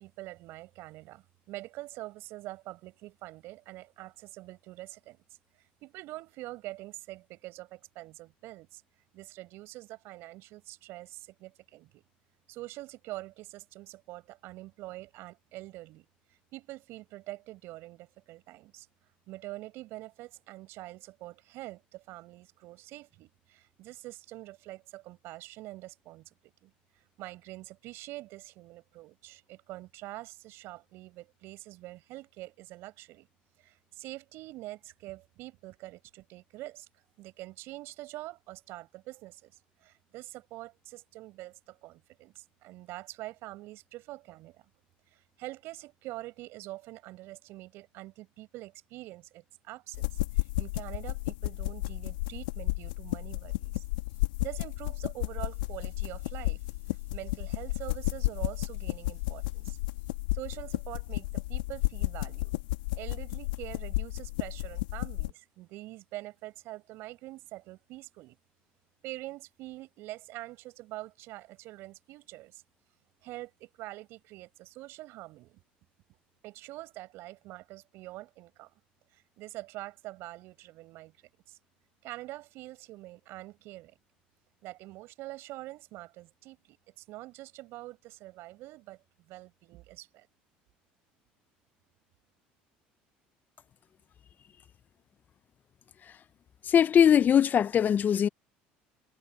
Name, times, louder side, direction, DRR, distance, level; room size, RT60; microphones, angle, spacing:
voice 1, 0.0-5.2 5.8-8.8 9.1-12.0 12.5-16.1 16.5-18.9 19.3-26.7 27.0-33.3 33.6-36.9 37.2-39.5 39.8-44.6 45.1-53.8 54.4-56.6 56.9-59.8 60.3-62.5 63.0-68.4 69.0-72.6 73.2-75.6 76.4-78.7 79.1-81.1 81.5-81.6 82.0-84.0 84.6-89.0 89.3-90.3, right 18 dB, 65° right, 5.0 m, -45 dB
sound 1, 49.9-65.3, left 20 dB, 85° left, 1.8 m, -33 dB
voice 2, 96.7-98.3, left 8 dB, 40° left, 0.7 m, -21 dB
hypercardioid pair, 75°, 4 cm